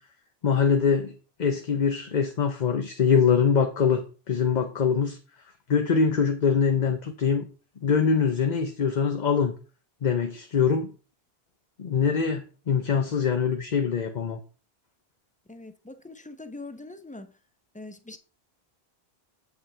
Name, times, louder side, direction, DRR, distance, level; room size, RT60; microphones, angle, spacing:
voice 1, 0.4-1.1 1.4-5.2 5.7-7.5 7.8-9.5 10.0-10.9 11.8-14.4, left 6 dB, 50° left, 0.9 m, -23 dB
voice 2, 15.5-17.3 17.8-18.2, left 2 dB, 10° left, 0.5 m, -42 dB
8.1 x 7.4 x 3.3 m
omnidirectional pair, 1.0 m